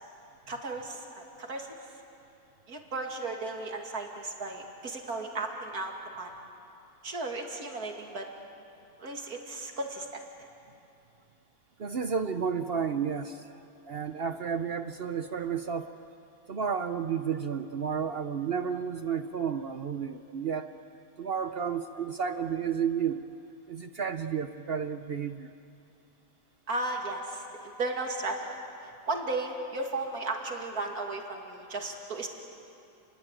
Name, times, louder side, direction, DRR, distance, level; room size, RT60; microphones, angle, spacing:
voice 1, 0.5-1.7 2.7-6.3 7.0-8.3 9.0-10.2 26.7-28.6 28.8-32.3, right 2 dB, 80° right, 2 dB, 3.0 m, -35 dB
voice 2, 11.8-15.9 16.5-20.7 21.2-23.2 23.7-25.5, right 7 dB, 50° right, 9 dB, 0.8 m, -32 dB
29.5 x 22.0 x 9.1 m, 2.7 s
omnidirectional pair, 1.6 m